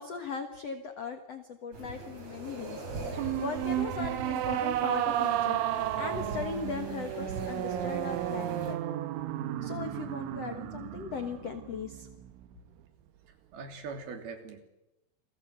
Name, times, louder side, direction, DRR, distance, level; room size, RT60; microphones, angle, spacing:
voice 1, 0.0-8.8 9.6-12.1, left 5 dB, 75° left, 7 dB, 1.4 m, -39 dB
sound 1, 1.7-8.7, right 3 dB, 35° right, 4.8 m, -41 dB
sound 2, 3.1-12.5, right 12 dB, 85° right, 3.6 m, -33 dB
voice 2, 13.3-14.6, right 4 dB, 55° right, 5 dB, 4.7 m, -42 dB
29.0 x 21.0 x 8.2 m, 0.90 s
omnidirectional pair, 5.4 m